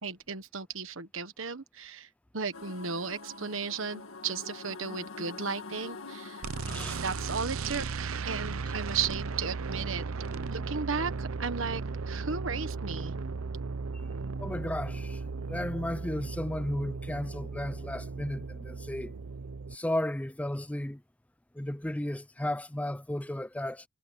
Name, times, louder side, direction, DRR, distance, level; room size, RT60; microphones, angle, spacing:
voice 1, 0.0-6.4 7.0-10.0 10.5-13.2, right 5 dB, 70° right, 1.4 m, -35 dB
sound 1, 2.5-7.4, left 3 dB, 75° left, 1.7 m, -45 dB
sound 2, 6.4-19.8, right 4 dB, 85° right, 0.7 m, -36 dB
voice 2, 6.6-7.0 14.4-15.2 15.5-19.1 19.7-21.0 21.5-23.8, left 1 dB, 5° left, 0.4 m, -34 dB
head